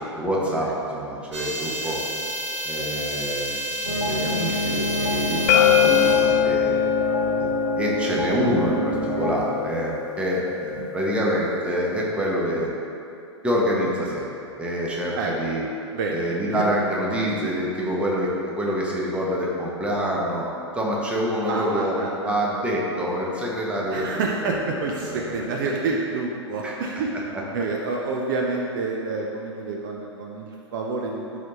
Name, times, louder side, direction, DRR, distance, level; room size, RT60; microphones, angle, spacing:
voice 1, 0.0-2.0 2.6-6.7 7.4-7.5 7.8-12.7 13.4-14.3 14.6-15.6 16.1-20.4 20.7-21.9 22.2-24.5 25.0-25.5 26.6-26.8, equal, 5° right, -4 dB, 1.1 m, -26 dB
sound 1, 1.3-6.4, equal, 70° right, 1.5 m, -30 dB
sound 2, 3.8-9.3, right 1 dB, 90° left, 1.0 m, -27 dB
sound 3, 5.5-11.3, left 12 dB, 35° left, 0.4 m, -23 dB
voice 2, 21.5-22.4 23.9-27.1 27.5-31.2, right 3 dB, 45° right, 0 dB, 0.6 m, -28 dB
12.0 x 4.1 x 3.0 m, 2.7 s
figure-of-eight pair, 100°, 15 cm